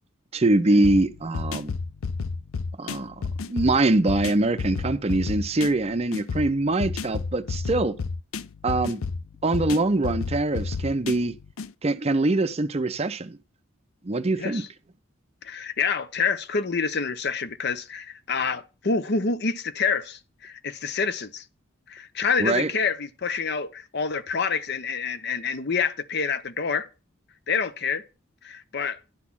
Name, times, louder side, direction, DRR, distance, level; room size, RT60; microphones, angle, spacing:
voice 1, 0.3-1.7 2.8-3.2 3.5-7.9 8.6-9.0 9.4-11.3 11.8-13.4 14.0-14.6 22.4-22.7, right 2 dB, 30° right, 0.5 m, -23 dB
sound 1, 0.8-11.7, left 4 dB, 85° left, 0.5 m, -32 dB
voice 2, 14.4-14.7 15.4-21.4 21.9-26.9 27.5-28.0 28.4-29.0, left 5 dB, 55° left, 0.7 m, -27 dB
11.0 x 4.2 x 7.2 m
head